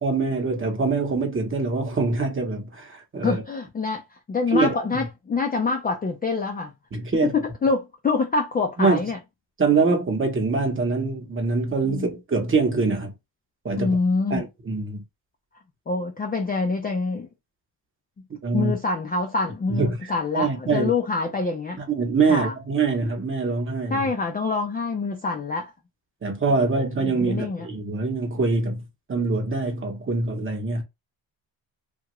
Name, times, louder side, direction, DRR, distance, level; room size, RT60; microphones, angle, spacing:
voice 1, 0.0-3.4 4.5-5.0 6.9-7.3 8.8-9.0 9.6-13.1 13.6-14.0 14.3-15.0 18.4-18.7 19.7-20.0 20.3-20.9 21.9-24.1 26.2-28.8 29.1-30.8, right 4 dB, 25° right, 0.8 m, -24 dB
voice 2, 3.2-4.0 4.3-6.7 7.2-9.2 11.8-12.1 13.8-14.5 15.9-17.3 18.5-21.8 22.3-22.5 23.9-25.7 27.0-27.7, left 4 dB, 20° left, 0.3 m, -25 dB
2.8 x 2.4 x 2.9 m
cardioid pair, 130°, 46 cm